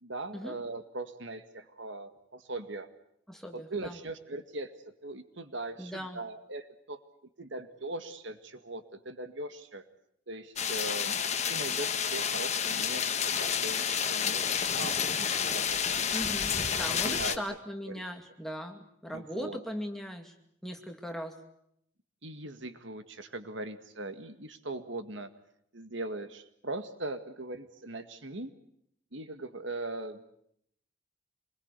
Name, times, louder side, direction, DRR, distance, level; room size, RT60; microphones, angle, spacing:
voice 1, 0.0-2.9 3.5-4.7 5.0-7.0 7.4-9.8 10.3-11.2 11.5-15.8 16.7-17.5 17.9-18.0 19.1-19.6 22.2-25.3 25.7-28.5 29.1-30.2, right 2 dB, 65° right, 9 dB, 1.9 m, -40 dB
voice 2, 3.3-4.0 5.8-6.2 16.1-20.3 20.6-21.4, equal, ahead, 4 dB, 2.4 m, -39 dB
sound 1, 10.6-17.4, left 7 dB, 35° left, 1.5 m, -30 dB
26.5 x 21.5 x 8.2 m, 0.72 s
head